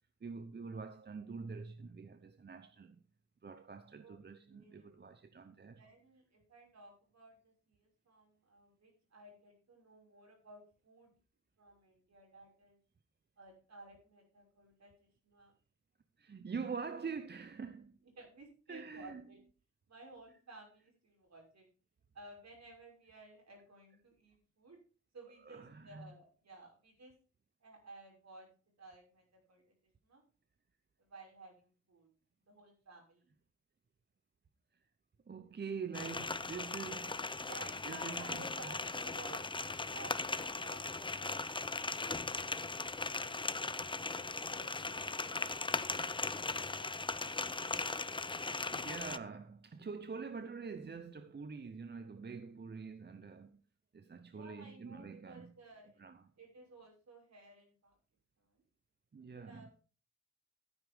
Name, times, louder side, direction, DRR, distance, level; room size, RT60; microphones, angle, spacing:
voice 1, 0.2-3.0 3.4-5.8 16.2-18.0 18.7-19.3 25.4-26.1 35.3-37.5 37.8-38.7 48.7-53.6 53.9-55.5 56.0-56.3 59.1-59.7, right 5 dB, 35° right, 0.8 m, -45 dB
voice 2, 4.4-4.9 5.8-11.1 11.6-12.8 13.4-15.5 18.2-19.4 19.9-21.7 22.1-24.8 25.1-27.1 27.6-28.5 28.8-29.7 30.0-30.2 31.0-32.1 32.5-33.3 37.4-39.4 39.9-41.9 43.2-47.0 54.3-56.0 56.4-57.9 58.5-58.6 59.3-59.7, right 2 dB, 65° right, 5.9 m, -56 dB
sound 1, 35.9-49.2, left 3 dB, 15° left, 0.5 m, -38 dB
13.5 x 9.8 x 3.6 m
wide cardioid pair, 95°, 29 cm